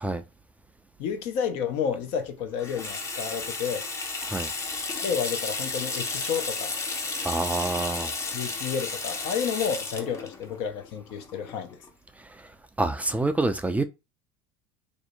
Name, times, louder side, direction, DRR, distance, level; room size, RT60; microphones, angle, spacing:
voice 1, 1.0-3.9 5.0-6.7 8.3-11.8, left 7 dB, 60° left, 0.6 m, -30 dB
Water tap faucet / Sink (filling or washing), 2.6-11.9, left 3 dB, 25° left, 0.7 m, -33 dB
voice 2, 7.2-8.1 12.2-12.5 12.8-13.8, right 2 dB, 10° right, 0.3 m, -27 dB
2.7 x 2.0 x 2.5 m
hypercardioid pair, 75°, 13 cm